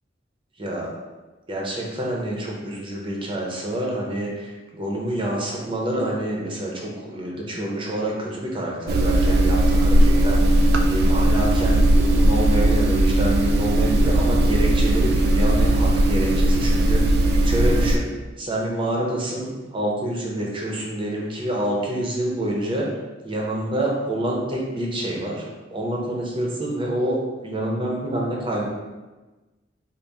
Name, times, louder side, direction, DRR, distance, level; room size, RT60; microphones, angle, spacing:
voice 1, 1.5-17.0 17.5-18.1 18.4-22.8 23.2-25.4 25.7-27.2 27.4-28.7, right 1 dB, 25° right, -2 dB, 0.7 m, -27 dB
sound 1, 8.9-18.0, right 1 dB, 55° right, 0.3 m, -18 dB
4.0 x 2.1 x 3.4 m, 1.2 s
head